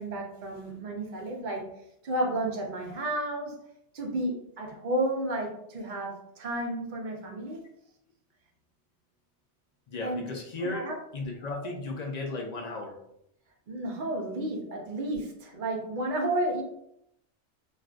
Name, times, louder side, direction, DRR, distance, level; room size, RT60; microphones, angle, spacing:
voice 1, 0.0-1.6 2.0-3.5 3.9-7.6 10.0-11.0 13.7-16.6, right 1 dB, 50° right, 2 dB, 0.7 m, -32 dB
voice 2, 9.9-10.9 11.1-13.0 14.7-14.8, left 2 dB, 65° left, 1 dB, 0.4 m, -35 dB
3.5 x 2.5 x 2.4 m, 0.76 s
omnidirectional pair, 1.2 m